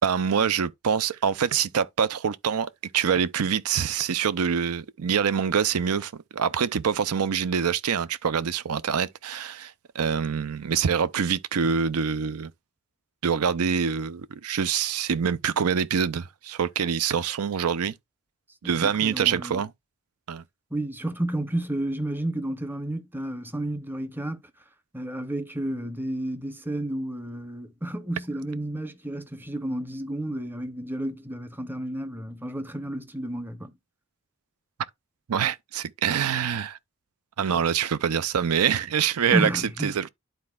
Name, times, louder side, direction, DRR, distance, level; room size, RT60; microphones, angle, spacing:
voice 1, 0.0-12.5 13.2-17.9 18.6-19.7 20.3-20.4 35.3-36.8 37.4-40.1, right 7 dB, 85° right, 0.5 m, -25 dB
voice 2, 18.6-19.6 20.7-24.4 24.9-33.7 39.3-39.9, right 1 dB, 10° right, 0.6 m, -31 dB
11.5 x 4.3 x 2.3 m
head